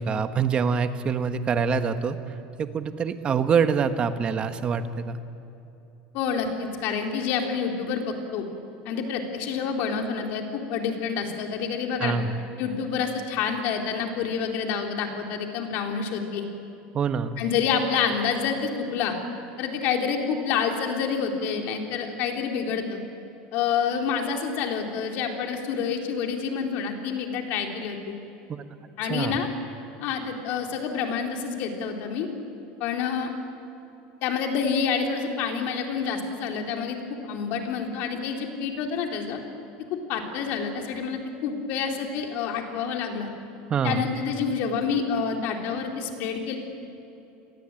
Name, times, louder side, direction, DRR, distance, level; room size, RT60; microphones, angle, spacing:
voice 1, 0.0-5.2 12.0-12.4 16.9-17.4 28.5-28.6 29.1-29.4 43.7-44.0, right 6 dB, 25° right, 9 dB, 1.4 m, -25 dB
voice 2, 6.1-8.5 8.9-12.2 12.6-16.5 17.4-19.1 19.6-23.0 23.5-28.2 29.0-29.5 30.0-32.3 32.8-33.3 34.2-37.0 37.2-39.4 39.9-43.3 43.8-46.6, left 6 dB, 55° left, 3 dB, 3.9 m, -28 dB
30.0 x 22.0 x 9.1 m, 2.9 s
cardioid pair, 155°, 4 cm